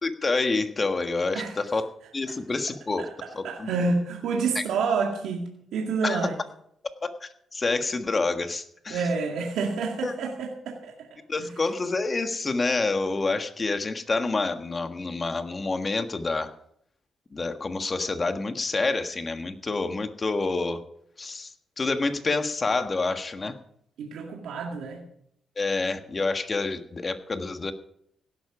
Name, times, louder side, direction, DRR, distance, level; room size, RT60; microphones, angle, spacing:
voice 1, 0.0-1.9 2.1-3.0 3.3-3.7 4.5-4.6 6.0-6.3 7.2-9.0 10.0-10.1 11.3-16.5 17.3-20.8 21.2-21.5 21.8-23.6 25.6-27.7, left 3 dB, 30° left, 7 dB, 1.6 m, -28 dB
voice 2, 3.4-6.4 8.9-11.1 11.4-11.5 24.0-25.0, right 4 dB, 90° right, 0 dB, 2.0 m, -28 dB
17.0 x 12.0 x 5.0 m, 0.71 s
cardioid pair, 95°, 0 cm